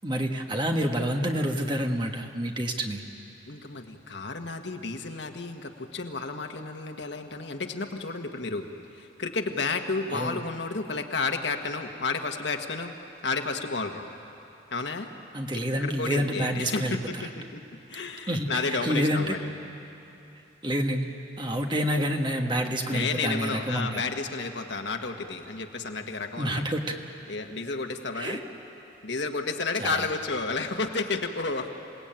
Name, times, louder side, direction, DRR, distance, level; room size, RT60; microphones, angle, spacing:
voice 1, 0.0-3.0 10.1-10.4 15.3-17.0 18.3-19.3 20.6-21.1 21.4-24.0 26.4-26.9 28.1-28.4 29.8-30.1, equal, 25° right, 3 dB, 1.4 m, -28 dB
voice 2, 3.5-8.7 8.9-12.9 13.2-14.1 14.7-15.1 15.8-17.0 17.5-17.6 17.9-19.5 22.9-26.6 27.3-28.4 29.0-31.7, left 3 dB, 70° left, 5 dB, 1.5 m, -31 dB
27.5 x 18.5 x 9.0 m, 2.8 s
head